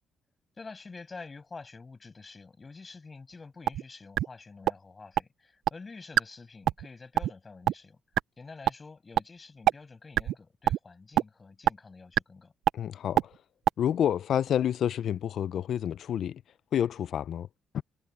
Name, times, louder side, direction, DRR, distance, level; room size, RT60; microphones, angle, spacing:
voice 1, 0.6-8.0 8.4-12.5, left 4 dB, 30° left, 7.8 m, -47 dB
sound 1, 3.7-3.8 4.2-4.3 4.7-4.8 5.2-5.3 5.7-5.8 6.2-6.3 6.7-6.9 7.2-7.3 7.7-7.8 8.2-8.3 8.7-8.8 9.2-9.3 9.7-9.8 10.2-10.3 10.7-10.8 11.2-11.3 11.7-11.8 12.2-12.3 12.7-12.8 13.2-13.3 13.7-13.8, right 11 dB, 80° right, 0.3 m, -22 dB
voice 2, 12.7-13.3 13.8-16.4 16.7-17.5 17.7-17.8, left 9 dB, 65° left, 0.4 m, -29 dB
cardioid pair, 90°, 0 cm